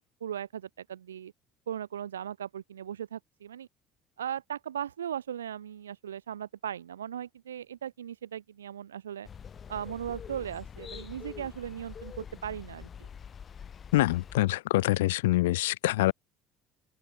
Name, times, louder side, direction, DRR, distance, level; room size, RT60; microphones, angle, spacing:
voice 1, 0.0-1.3 1.7-3.7 4.2-9.3 9.7-13.1, right 9 dB, 75° right, 1.0 m, -38 dB
sound 1, 9.2-14.4, left 7 dB, 35° left, 4.5 m, -45 dB
voice 2, 13.9-16.1, left 17 dB, 65° left, 0.3 m, -25 dB
open air
figure-of-eight pair, 60°, 0 cm